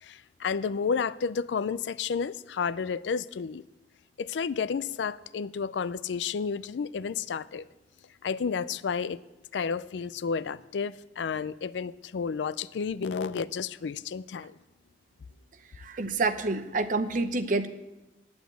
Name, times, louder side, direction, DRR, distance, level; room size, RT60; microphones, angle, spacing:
voice 1, 0.0-3.6 4.2-7.6 8.2-9.2 9.5-14.5, left 6 dB, 90° left, 17 dB, 0.4 m, -31 dB
voice 2, 15.8-17.7, right 3 dB, 50° right, 10 dB, 0.7 m, -28 dB
9.4 x 8.0 x 8.2 m, 1.0 s
head